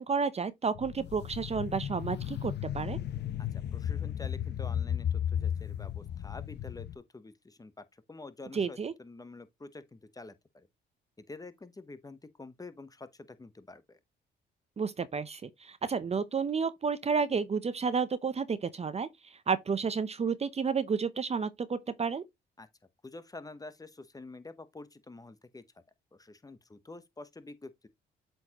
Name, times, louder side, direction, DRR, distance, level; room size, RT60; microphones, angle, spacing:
voice 1, 0.0-3.0 8.5-8.9 14.8-22.2, right 5 dB, 30° right, 0.6 m, -31 dB
sound 1, 0.7-7.0, left 9 dB, 60° left, 0.7 m, -34 dB
voice 2, 3.4-10.7 11.2-14.0 22.6-22.7 23.0-25.6 26.1-27.9, left 3 dB, 20° left, 0.9 m, -48 dB
7.8 x 4.4 x 2.9 m
cardioid pair, 90°, 20 cm